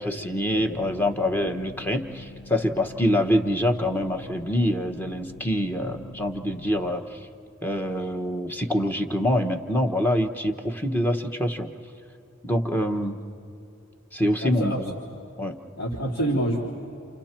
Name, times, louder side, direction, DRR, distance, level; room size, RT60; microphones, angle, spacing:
voice 1, 0.0-7.2 7.6-11.7 12.4-13.2 14.1-14.9 15.4-15.6, equal, 10° left, 4 dB, 1.1 m, -25 dB
sound 1, 0.7-6.9, left 2 dB, 55° left, 1.2 m, -44 dB
voice 2, 14.4-14.9 15.8-16.6, right 1 dB, 80° left, -5 dB, 3.2 m, -28 dB
29.5 x 29.5 x 4.5 m, 2.9 s
head